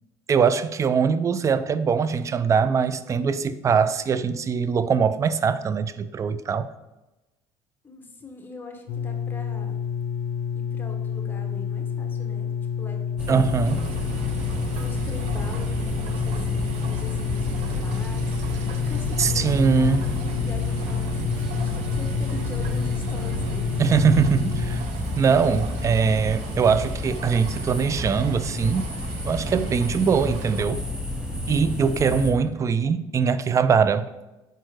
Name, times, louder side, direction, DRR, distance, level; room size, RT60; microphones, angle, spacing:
voice 1, 0.3-6.7 13.3-13.8 19.2-20.1 23.8-24.8 25.2-28.9 29.2-30.8 31.5-34.1, right 6 dB, 25° right, 0.4 m, -22 dB
voice 2, 7.8-9.8 10.5-12.5 12.8-13.6 14.7-23.8 31.3-31.8, left 3 dB, 15° left, 1.1 m, -42 dB
sound 1, 8.9-24.8, left 7 dB, 65° left, 0.5 m, -29 dB
sound 2, 13.2-32.3, left 1 dB, 5° right, 1.1 m, -30 dB
sound 3, 13.6-30.7, right 7 dB, 70° right, 0.6 m, -42 dB
5.1 x 4.3 x 4.6 m
supercardioid pair, 85°, 11 cm